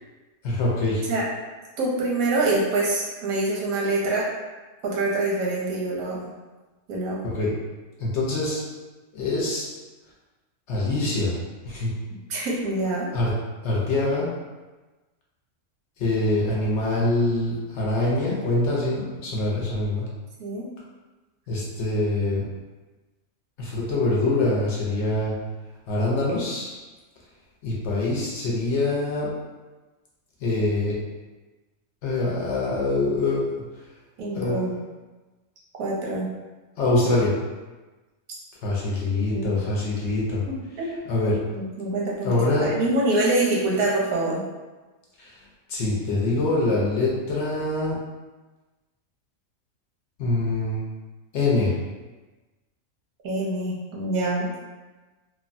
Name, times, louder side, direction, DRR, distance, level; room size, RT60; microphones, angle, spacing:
voice 1, 0.4-1.0 7.2-7.5 8.0-8.6 9.1-9.7 10.7-11.4 11.6-11.9 13.1-13.3 13.6-14.3 16.0-20.1 21.5-22.5 23.6-25.3 25.9-26.8 27.6-29.3 30.4-31.0 32.0-33.6 34.3-34.8 36.8-37.4 38.6-40.4 41.1-41.4 42.2-42.7 45.2-45.4 45.7-48.0 50.2-50.9 51.3-51.7, left 2 dB, 65° left, -4 dB, 0.8 m, -24 dB
voice 2, 1.8-4.2 4.8-6.2 6.9-7.2 12.3-13.1 20.4-20.7 34.2-34.7 35.8-36.3 39.1-39.6 40.5-40.9 41.5-42.3 42.6-44.4 53.2-54.5, right 2 dB, 85° right, -3 dB, 1.2 m, -25 dB
3.1 x 2.1 x 2.5 m, 1.2 s
omnidirectional pair, 1.4 m